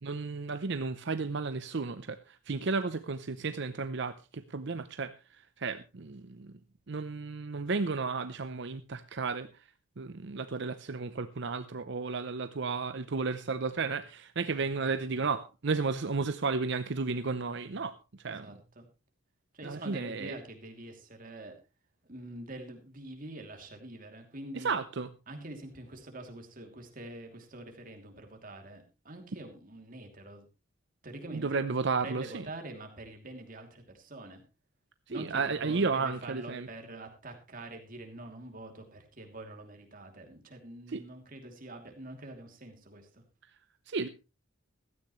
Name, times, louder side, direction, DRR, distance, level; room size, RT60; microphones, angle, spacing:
voice 1, 0.0-6.5 6.9-9.7 10.0-18.5 19.6-20.3 24.5-25.1 31.3-32.5 35.1-36.7 40.9-41.0 43.9-44.1, right 4 dB, 60° right, 11 dB, 0.7 m, -33 dB
voice 2, 18.3-18.9 19.5-21.5 22.0-24.8 25.3-30.5 31.0-31.6 32.0-34.4 35.1-43.2, right 2 dB, 45° right, 4 dB, 2.8 m, -45 dB
16.0 x 13.5 x 3.1 m, 0.29 s
head